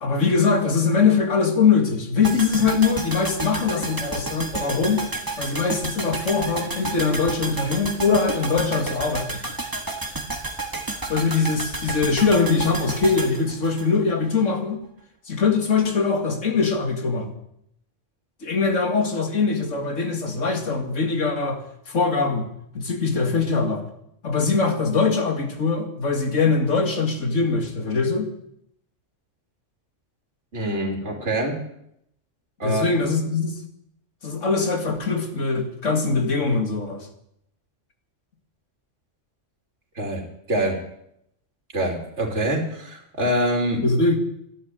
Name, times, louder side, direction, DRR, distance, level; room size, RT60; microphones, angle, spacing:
voice 1, 0.0-5.1 5.4-9.4 11.1-14.9 15.3-17.3 18.4-21.6 21.9-22.5 22.7-23.9 24.2-28.3 32.6-33.5 34.2-37.1 43.8-44.2, left 4 dB, 85° left, 6 dB, 2.4 m, -22 dB
sound 1, 2.2-14.4 14.7-14.8, right 2 dB, 15° right, 1.5 m, -31 dB
voice 2, 30.5-31.6 32.6-32.8 40.0-40.2 40.5-40.8 41.7-43.8, right 1 dB, 65° right, 2 dB, 3.3 m, -25 dB
14.0 x 11.0 x 9.3 m, 0.76 s
omnidirectional pair, 1.3 m